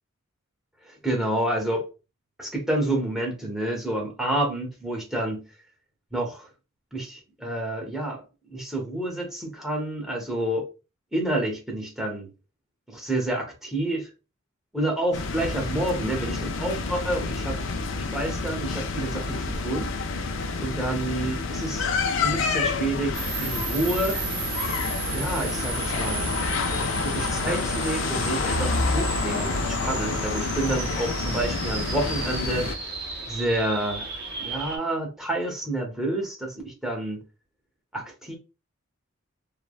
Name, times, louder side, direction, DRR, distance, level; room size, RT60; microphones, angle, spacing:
voice 1, 0.8-1.8 2.4-5.5 6.1-6.5 6.9-8.2 8.5-10.6 11.1-12.3 12.9-14.1 14.7-17.6 17.9-19.9 20.6-21.9 22.2-24.2 25.1-26.3 27.0-32.7 33.3-34.1 34.4-37.2 37.9-38.3, right 1 dB, ahead, 0.8 m, -29 dB
sound 1, 15.1-32.8, left 3 dB, 65° left, 0.4 m, -28 dB
sound 2, 23.1-34.8, right 4 dB, 55° right, 0.8 m, -34 dB
3.2 x 2.1 x 2.3 m
head